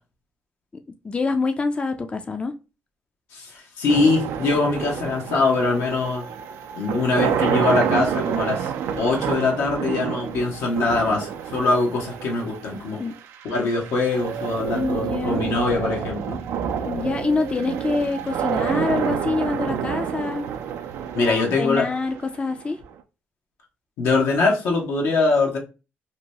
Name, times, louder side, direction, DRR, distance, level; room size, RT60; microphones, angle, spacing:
voice 1, 1.0-2.5 13.0-13.1 14.7-15.4 16.8-20.5 21.2-22.8, left 3 dB, 25° left, 0.3 m, -26 dB
voice 2, 3.3-6.2 6.7-13.0 13.4-16.4 21.1-21.9 24.0-25.6, left 3 dB, 85° left, 0.8 m, -22 dB
sound 1, 3.9-22.9, right 8 dB, 80° right, 0.3 m, -28 dB
2.8 x 2.2 x 2.7 m
cardioid pair, 75°, 4 cm